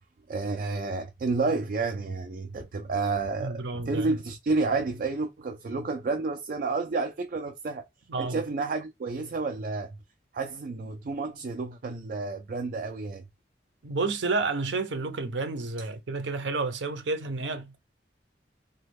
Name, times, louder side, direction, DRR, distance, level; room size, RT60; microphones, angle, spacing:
voice 1, 0.3-7.9 8.2-10.0 10.3-13.2, right 3 dB, 50° right, 0.4 m, -30 dB
voice 2, 3.4-4.2 8.1-8.4 13.8-17.8, right 3 dB, 80° right, 0.7 m, -30 dB
3.1 x 2.2 x 3.3 m
head